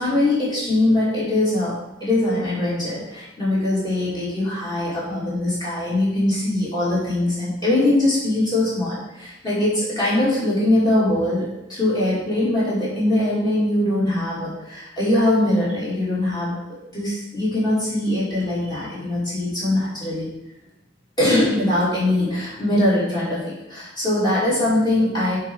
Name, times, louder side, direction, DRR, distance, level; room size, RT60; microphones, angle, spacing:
voice 1, 0.0-16.6 16.9-20.3 21.2-25.4, left 1 dB, 25° left, -9 dB, 2.6 m, -22 dB
8.9 x 3.4 x 4.7 m, 0.89 s
head